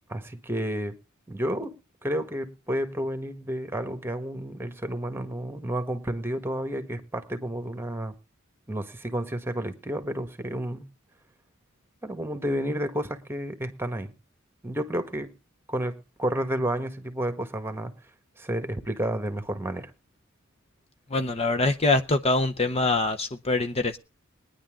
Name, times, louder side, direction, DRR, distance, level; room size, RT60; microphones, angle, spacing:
voice 1, 0.1-0.9 1.3-1.7 2.0-8.1 8.7-10.8 12.0-14.1 14.6-15.3 15.7-17.9 18.4-19.9, right 1 dB, 10° right, 1.6 m, -31 dB
voice 2, 21.1-24.0, left 2 dB, 30° left, 0.7 m, -24 dB
21.0 x 10.5 x 3.6 m
head